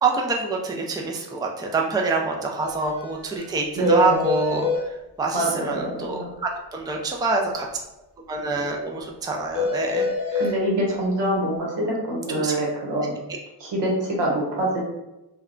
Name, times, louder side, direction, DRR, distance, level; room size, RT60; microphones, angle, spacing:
voice 1, 0.0-4.6 5.2-7.7 8.3-10.4 12.4-12.5, right 3 dB, 10° right, 1 dB, 0.3 m, -26 dB
sound 1, 2.6-2.7 3.0-3.1 3.4-3.5 3.8-4.8 9.5-10.5, left 4 dB, 45° left, 0.7 m, -25 dB
voice 2, 3.7-4.2 5.3-6.3 10.3-13.1 13.6-14.8, right 1 dB, 90° right, -2 dB, 1.0 m, -25 dB
2.2 x 2.1 x 3.6 m, 0.98 s
cardioid pair, 90°, 41 cm